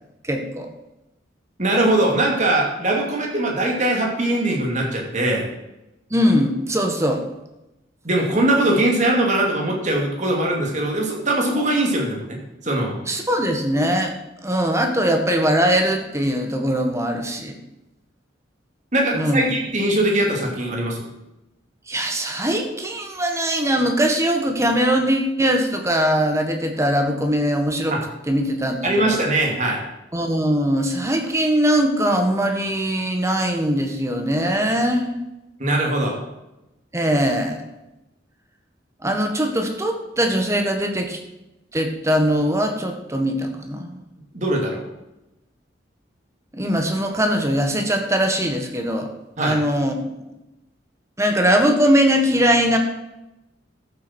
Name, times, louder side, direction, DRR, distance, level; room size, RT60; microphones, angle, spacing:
voice 1, 0.2-0.7 6.1-7.2 13.1-14.1 14.4-17.5 19.1-19.5 21.9-28.0 28.3-29.2 30.1-35.1 36.9-37.6 39.0-41.2 41.7-44.0 46.5-49.1 49.4-50.1 51.2-52.8, equal, 15° right, 4 dB, 1.5 m, -21 dB
voice 2, 1.6-5.5 8.0-12.4 12.6-13.0 18.9-21.1 27.9-28.0 28.8-29.8 35.6-36.2 44.3-44.8 49.4-49.6, right 1 dB, 40° right, 0 dB, 2.7 m, -21 dB
13.5 x 7.7 x 4.5 m, 0.93 s
head